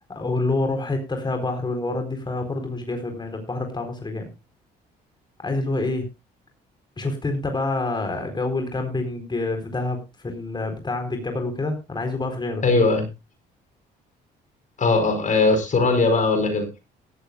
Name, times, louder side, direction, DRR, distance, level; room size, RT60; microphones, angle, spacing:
voice 1, 0.1-4.3 5.4-6.1 7.0-12.7, left 2 dB, 25° left, 5 dB, 4.1 m, -27 dB
voice 2, 12.6-13.1 14.8-16.7, left 3 dB, 45° left, 8 dB, 4.7 m, -19 dB
17.0 x 14.0 x 2.4 m, 0.27 s
cardioid pair, 80°, 18 cm